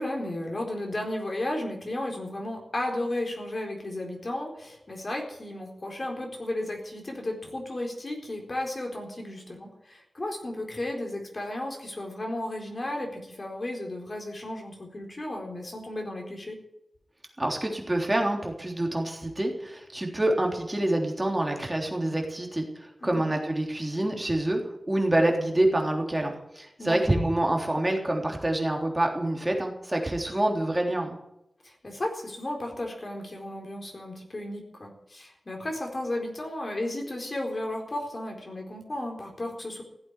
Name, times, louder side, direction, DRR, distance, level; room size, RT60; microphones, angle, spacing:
voice 1, 0.0-16.6 23.0-23.2 26.8-27.0 31.6-39.8, left 1 dB, 40° left, 1 dB, 4.2 m, -34 dB
voice 2, 17.4-24.6 24.9-31.2, right 1 dB, 15° right, 1 dB, 3.5 m, -27 dB
16.0 x 8.5 x 9.6 m, 0.82 s
wide cardioid pair, 110°, 0 cm